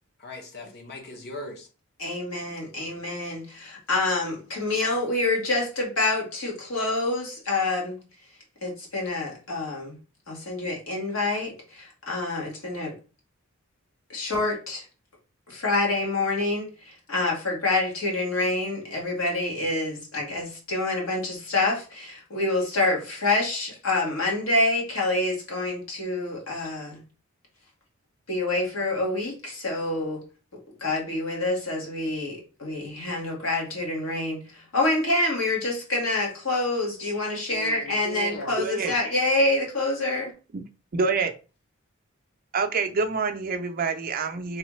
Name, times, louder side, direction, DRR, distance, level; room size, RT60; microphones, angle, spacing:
voice 1, 0.2-1.7 37.5-38.6, left 1 dB, 50° left, 0.9 m, -39 dB
voice 2, 2.0-8.0 8.6-10.0 10.3-12.9 14.1-14.8 15.5-27.0 28.3-30.2 30.8-40.3, left 2 dB, 75° left, 1.6 m, -27 dB
voice 3, 38.6-38.9 40.5-40.6 40.9-41.3 42.5-44.6, right 4 dB, 45° right, 0.5 m, -26 dB
3.6 x 3.2 x 3.1 m
head